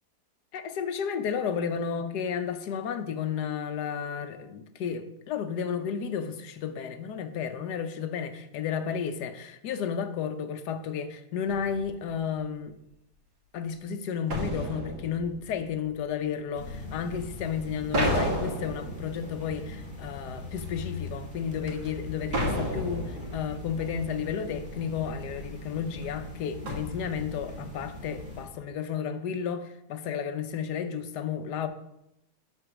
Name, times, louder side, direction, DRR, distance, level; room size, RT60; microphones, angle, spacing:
voice 1, 0.5-12.8 13.5-31.7, left 7 dB, 75° left, 1.3 m, -32 dB
sound 1, 11.5-12.1 14.3-16.1 17.9-19.9 20.6-20.7 21.9-22.0 22.3-23.9 26.0-26.1 26.7-27.7, equal, 70° right, 2.3 m, -32 dB
sound 2, 16.5-28.4, left 2 dB, 5° right, 1.8 m, -41 dB
8.0 x 3.9 x 6.0 m
omnidirectional pair, 1.8 m